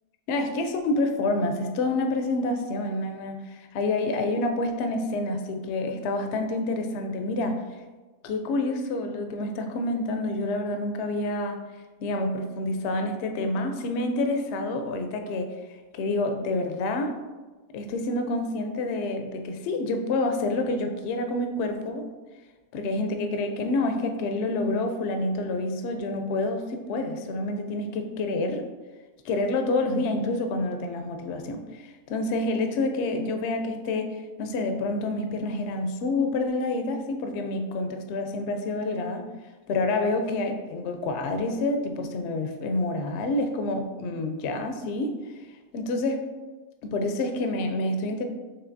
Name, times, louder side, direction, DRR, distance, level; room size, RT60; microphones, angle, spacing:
voice 1, 0.3-7.6 8.2-11.6 12.0-15.5 15.9-17.1 17.7-22.1 22.7-28.6 29.2-39.2 39.7-45.1 45.7-46.2 46.8-48.3, left 2 dB, 65° left, 5 dB, 0.6 m, -28 dB
5.6 x 3.4 x 2.6 m, 1.3 s
omnidirectional pair, 1.6 m